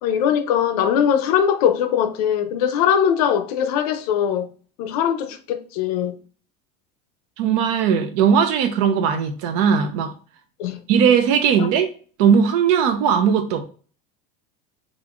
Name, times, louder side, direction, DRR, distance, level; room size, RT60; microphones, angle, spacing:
voice 1, 0.0-4.5 4.8-6.2 10.6-10.8, left 8 dB, 75° left, 0.7 m, -21 dB
voice 2, 7.4-10.1 10.9-11.9 12.2-13.6, right 7 dB, 60° right, 0.8 m, -18 dB
5.4 x 2.6 x 3.1 m
cardioid pair, 175°, 20 cm